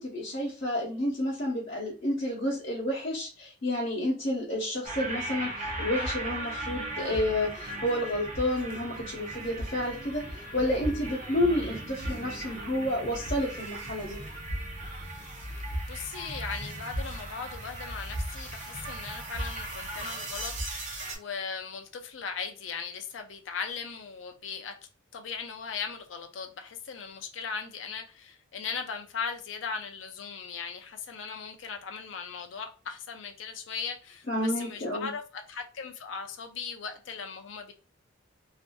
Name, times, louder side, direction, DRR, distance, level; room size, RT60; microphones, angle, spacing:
voice 1, 0.0-14.2 34.3-35.1, left 1 dB, 55° left, 0.9 m, -30 dB
sound 1, 4.8-21.1, right 1 dB, 40° right, 0.6 m, -37 dB
voice 2, 15.9-24.8 25.1-37.7, left 6 dB, 70° left, 0.5 m, -38 dB
2.5 x 2.5 x 2.2 m
head